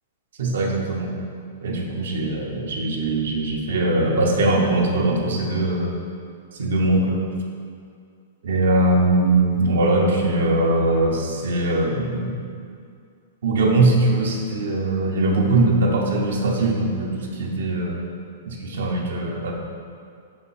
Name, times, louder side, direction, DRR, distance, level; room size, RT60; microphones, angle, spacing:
voice 1, 0.4-1.1 1.6-5.9 6.6-7.2 8.4-12.4 13.4-18.0 18.4-19.5, right 2 dB, 80° right, -2 dB, 0.9 m, -21 dB
5.4 x 4.3 x 4.2 m, 2.3 s
hypercardioid pair, 140°, 0 cm